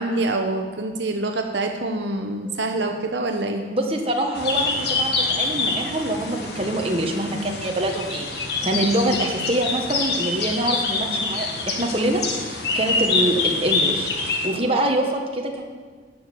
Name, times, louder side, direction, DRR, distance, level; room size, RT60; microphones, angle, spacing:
voice 1, 0.0-3.7 8.6-8.8 13.1-13.4 14.5-14.7, right 2 dB, 70° right, 4 dB, 1.0 m, -26 dB
voice 2, 3.7-15.5, right 1 dB, 30° right, 1 dB, 1.4 m, -25 dB
sound 1, 4.3-14.5, left 3 dB, 60° left, 1.6 m, -26 dB
12.0 x 6.4 x 9.1 m, 1.5 s
head